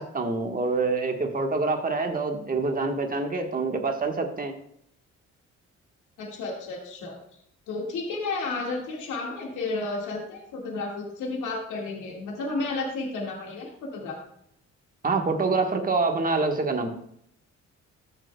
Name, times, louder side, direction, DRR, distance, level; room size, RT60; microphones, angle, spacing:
voice 1, 0.0-4.5 15.0-16.9, right 3 dB, 30° right, 4 dB, 1.4 m, -26 dB
voice 2, 6.2-7.2 7.7-14.2, left 3 dB, 85° left, -1 dB, 1.9 m, -32 dB
13.5 x 6.8 x 2.3 m, 0.70 s
cardioid pair, 90°, 30 cm